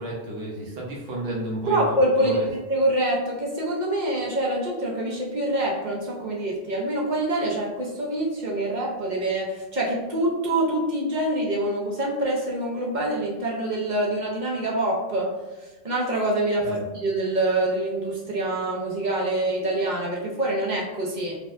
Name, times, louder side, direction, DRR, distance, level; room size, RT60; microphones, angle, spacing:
voice 1, 0.0-2.5 16.6-16.8, right 1 dB, 75° right, -3 dB, 1.0 m, -32 dB
voice 2, 1.7-15.3 15.8-21.4, right 1 dB, 50° right, -2 dB, 0.7 m, -25 dB
4.1 x 2.7 x 2.5 m, 1.2 s
omnidirectional pair, 1.1 m